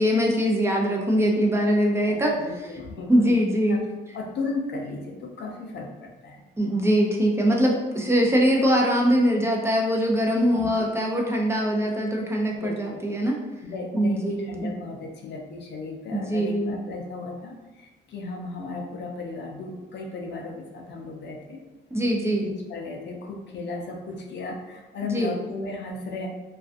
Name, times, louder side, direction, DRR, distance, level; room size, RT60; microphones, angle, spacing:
voice 1, 0.0-2.7 3.1-3.8 6.6-13.4 13.9-14.7 16.1-16.7 21.9-22.4 25.0-25.3, equal, 15° right, -1 dB, 0.4 m, -22 dB
voice 2, 2.1-3.4 3.7-3.8 4.1-6.4 10.5-10.9 12.6-13.0 13.6-21.6 22.4-26.3, left 3 dB, 65° left, 1 dB, 0.5 m, -35 dB
2.3 x 2.3 x 2.5 m, 1.1 s
cardioid pair, 90°, 20 cm